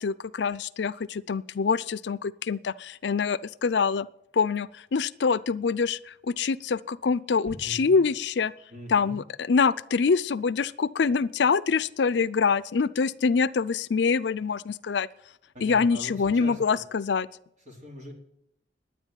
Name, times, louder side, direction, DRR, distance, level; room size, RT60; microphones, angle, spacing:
voice 1, 0.0-4.1 4.3-8.5 8.9-15.1 15.6-17.3, left 5 dB, 70° left, 17 dB, 0.5 m, -25 dB
voice 2, 7.5-8.0 8.7-9.2 15.5-16.8 17.7-18.1, equal, 45° right, 0 dB, 4.0 m, -41 dB
10.5 x 9.7 x 9.1 m, 0.76 s
head